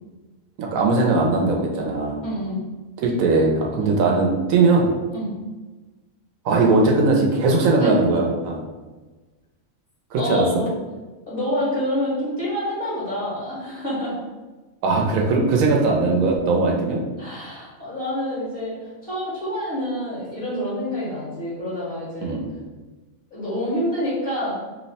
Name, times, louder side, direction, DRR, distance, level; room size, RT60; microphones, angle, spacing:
voice 1, 0.6-2.2 3.0-4.9 6.4-8.6 10.1-10.5 14.8-17.0 22.2-22.4, right 3 dB, 85° right, 0 dB, 1.0 m, -19 dB
voice 2, 2.2-2.6 3.7-3.9 5.1-5.3 7.8-7.9 10.2-10.7 11.3-14.1 17.2-18.8 19.0-22.4 23.3-24.5, equal, 45° left, -10 dB, 1.4 m, -27 dB
2.9 x 2.1 x 4.0 m, 1.2 s
omnidirectional pair, 1.4 m